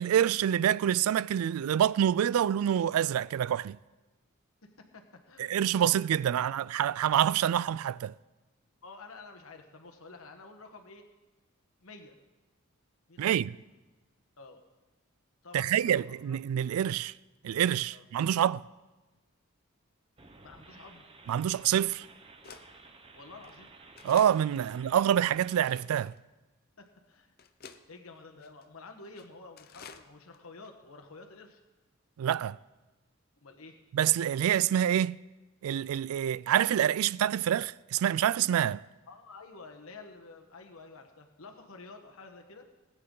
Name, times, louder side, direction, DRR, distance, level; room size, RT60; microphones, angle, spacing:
voice 1, 0.0-3.8 5.4-8.1 13.2-13.6 15.5-17.1 17.4-18.6 21.3-22.1 24.0-26.1 32.2-32.6 33.9-35.2 35.6-38.8, right 10 dB, 85° right, 0.3 m, -27 dB
voice 2, 4.6-5.6 6.3-6.7 8.8-11.1 11.8-12.2 13.1-13.4 14.4-14.6 15.4-16.4 17.9-18.0 20.4-21.1 23.1-23.7 26.8-27.3 27.9-31.6 33.4-33.8 39.1-42.7, left 3 dB, 80° left, 1.2 m, -50 dB
sound 1, 20.2-25.8, right 3 dB, 25° right, 0.8 m, -54 dB
sound 2, 20.8-20.9 21.6-21.7 22.4-22.7 23.4-23.6 24.0-24.4 25.0-25.1 25.7-26.2 26.9-27.0 27.4-27.8 28.4-28.7 29.1-29.3 29.6-30.1 30.3-30.4 30.6-30.7, left 6 dB, 45° left, 0.6 m, -50 dB
19.5 x 8.9 x 3.8 m
head